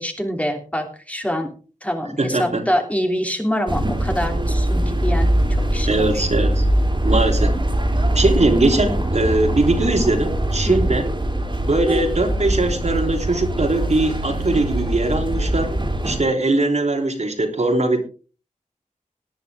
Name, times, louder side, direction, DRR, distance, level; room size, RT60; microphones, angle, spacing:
voice 1, 0.0-1.5 1.8-5.3 5.7-6.2 10.7-11.0, equal, 10° left, 3 dB, 3.2 m, -25 dB
voice 2, 2.2-2.6 5.8-6.6 7.0-7.5 8.1-11.1 11.6-15.7 16.0-18.0, right 2 dB, 55° right, 3 dB, 3.4 m, -20 dB
sound 1, 3.7-16.2, right 1 dB, 35° right, 3.6 m, -22 dB
18.5 x 11.0 x 3.6 m, 0.37 s
wide cardioid pair, 85°, 14 cm